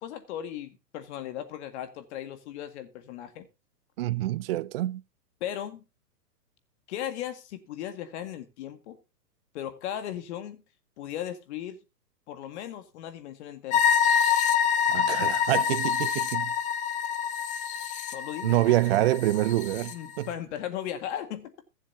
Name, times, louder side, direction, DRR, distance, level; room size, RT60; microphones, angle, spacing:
voice 1, 0.0-3.5 5.4-5.8 6.9-9.0 9.5-10.6 11.0-11.8 12.3-13.8 18.1-18.6 19.9-21.5, left 11 dB, 45° left, 2.0 m, -37 dB
voice 2, 4.0-5.0 14.9-16.5 18.4-20.3, right 15 dB, 40° right, 0.5 m, -26 dB
sound 1, 13.7-19.9, left 8 dB, 15° left, 0.9 m, -26 dB
22.0 x 7.6 x 2.8 m
hypercardioid pair, 135°, 48 cm